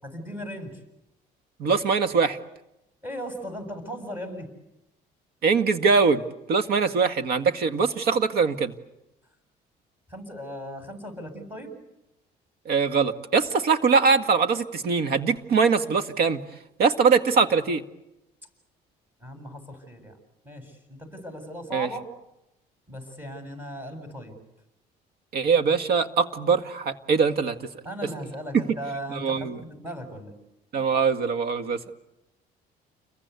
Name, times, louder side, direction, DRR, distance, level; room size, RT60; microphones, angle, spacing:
voice 1, 0.0-0.8 3.0-4.5 10.1-11.7 19.2-20.1 20.4-22.1 22.9-24.4 27.8-30.3, equal, 10° right, 5 dB, 7.9 m, -37 dB
voice 2, 1.6-2.4 5.4-6.2 6.5-8.7 12.7-16.4 16.8-17.8 21.7-21.9 25.3-27.7 28.5-28.6 29.1-29.6 30.7-31.8, right 5 dB, 65° right, 10 dB, 2.0 m, -22 dB
30.0 x 22.5 x 8.4 m, 0.88 s
cardioid pair, 110°, 17 cm